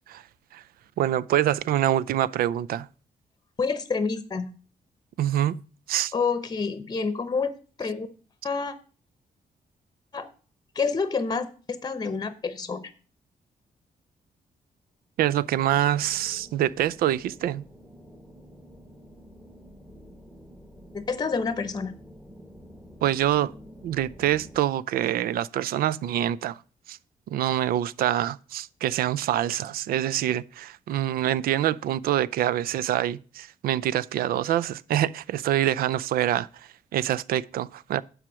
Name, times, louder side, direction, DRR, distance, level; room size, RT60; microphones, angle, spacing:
voice 1, 1.0-2.9 5.2-5.6 5.9-6.1 15.2-17.7 23.0-23.5 23.8-26.6 26.9-27.0 27.3-38.0, right 12 dB, 90° right, 0.4 m, -25 dB
voice 2, 3.6-4.5 6.1-7.5 7.8-8.1 8.4-8.7 10.1-10.3 10.7-12.9 20.9-21.9, left 4 dB, 25° left, 0.8 m, -28 dB
sound 1, 15.6-24.6, equal, ahead, 1.2 m, -49 dB
7.4 x 4.9 x 6.2 m
cardioid pair, 120°, 15 cm